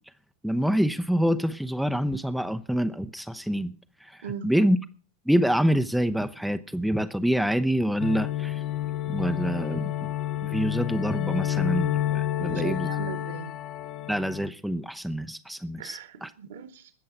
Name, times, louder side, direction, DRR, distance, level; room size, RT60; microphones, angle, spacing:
voice 1, 0.4-3.7 4.0-4.2 4.4-4.8 5.3-8.6 9.1-10.1 10.4-12.9 14.1-16.3, equal, ahead, 0.7 m, -26 dB
voice 2, 4.2-4.5 12.3-13.5 15.8-16.9, right 9 dB, 60° right, 1.8 m, -38 dB
sound 1, 8.0-14.5, left 12 dB, 35° left, 0.8 m, -29 dB
20.0 x 7.6 x 5.8 m
figure-of-eight pair, 90°, 0 cm